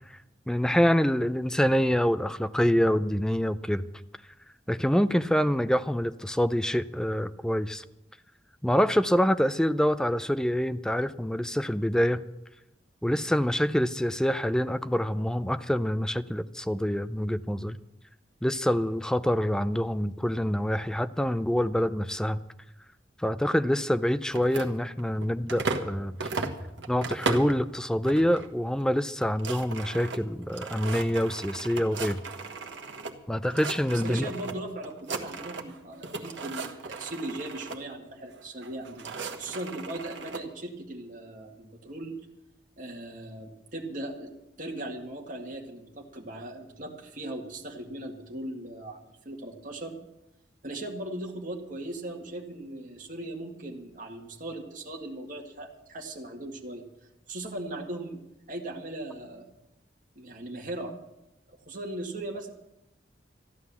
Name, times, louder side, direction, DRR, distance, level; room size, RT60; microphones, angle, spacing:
voice 1, 0.5-3.9 4.7-7.8 8.6-12.2 13.0-17.8 18.4-22.4 23.2-26.2 26.9-32.2 33.3-34.3, equal, 5° left, 12 dB, 0.4 m, -26 dB
sound 1, 24.3-25.9 26.2-27.6 28.0-28.5 28.8-28.9 29.1-33.1 33.4-34.5 34.8-35.8 36.0-37.8 38.6-40.4, right 3 dB, 80° right, 1.4 m, -36 dB
voice 2, 34.0-39.1 39.4-42.2 42.8-44.3 44.6-49.9 50.6-56.8 57.3-58.2 58.5-59.5 60.2-60.9 61.7-62.5, right 1 dB, 50° right, 0 dB, 2.0 m, -38 dB
14.0 x 11.5 x 7.0 m, 0.91 s
head